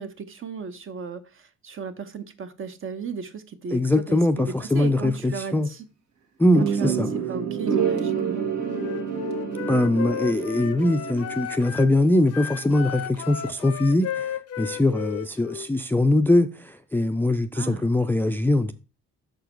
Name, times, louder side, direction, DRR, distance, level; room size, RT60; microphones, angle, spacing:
voice 1, 0.0-3.8 4.1-5.8 6.8-8.5 17.5-17.8, right 5 dB, 45° right, 0.9 m, -35 dB
voice 2, 3.7-5.7 6.4-7.1 9.7-18.7, left 1 dB, 5° left, 0.4 m, -22 dB
sound 1, 6.5-11.7, right 7 dB, 70° right, 1.7 m, -28 dB
Wind instrument woodwind instrument, 8.7-11.9 12.3-15.7, left 10 dB, 55° left, 0.6 m, -34 dB
6.3 x 4.7 x 4.4 m
cardioid pair, 90°, 30 cm